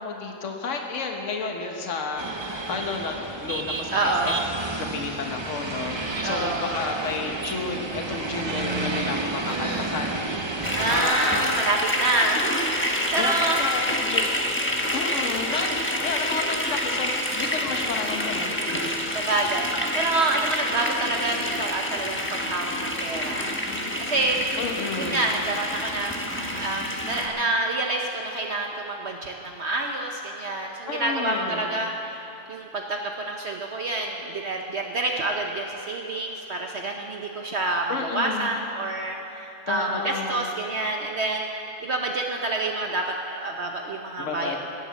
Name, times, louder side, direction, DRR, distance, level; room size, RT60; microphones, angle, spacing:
voice 1, 0.0-4.3 4.8-11.5 13.2-13.3 13.6-14.3 14.9-18.8 24.6-25.2 30.9-31.7 37.9-38.5 39.7-40.5 44.2-44.6, left 4 dB, 60° left, 2 dB, 1.5 m, -31 dB
voice 2, 1.6-2.0 3.9-4.4 6.2-6.9 9.4-9.9 10.7-13.6 19.1-23.5 24.0-24.4 25.0-32.2 32.5-41.4 41.8-44.6, right 2 dB, 55° right, 1 dB, 1.1 m, -28 dB
sound 1, 2.2-11.0, right 2 dB, 25° right, 0.6 m, -31 dB
sound 2, 10.6-27.3, left 1 dB, 10° left, 1.1 m, -28 dB
17.0 x 9.1 x 7.2 m, 3.0 s
omnidirectional pair, 1.5 m